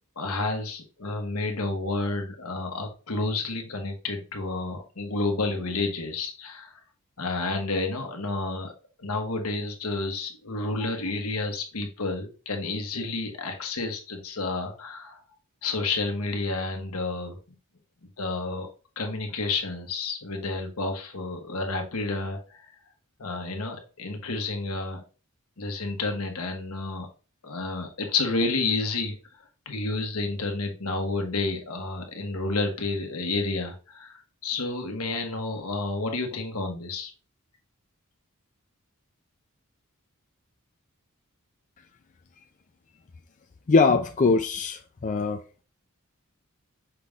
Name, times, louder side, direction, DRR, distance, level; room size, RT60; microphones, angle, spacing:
voice 1, 0.2-6.8 7.2-8.7 9.0-15.2 15.6-17.4 18.2-18.7 19.0-22.7 23.2-25.0 25.6-27.1 27.4-29.2 29.6-37.1, left 3 dB, 75° left, 1.2 m, -30 dB
voice 2, 43.7-45.4, left 4 dB, 35° left, 0.4 m, -22 dB
5.8 x 3.5 x 2.4 m
head